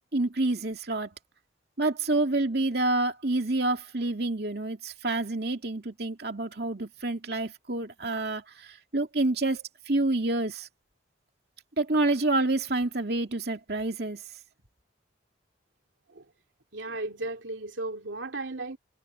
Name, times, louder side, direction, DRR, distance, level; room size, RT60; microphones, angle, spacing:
voice 1, 0.1-1.1 1.8-10.7 11.8-14.2, right 2 dB, 55° right, 2.6 m, -28 dB
voice 2, 16.7-18.8, right 2 dB, 80° right, 2.6 m, -35 dB
head